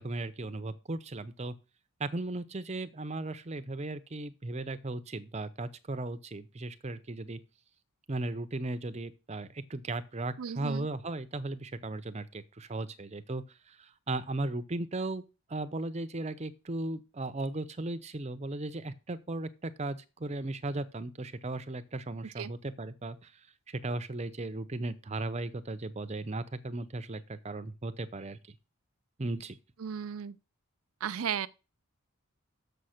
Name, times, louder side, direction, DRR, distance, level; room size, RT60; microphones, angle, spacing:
voice 1, 0.0-1.5 2.0-7.4 8.1-15.2 15.5-23.3 23.7-28.4 29.2-29.6, right 2 dB, 30° right, 0.6 m, -36 dB
voice 2, 10.4-10.9 22.4-22.5 29.8-30.4 31.0-31.5, right 8 dB, 70° right, 0.5 m, -35 dB
6.9 x 5.6 x 6.5 m
head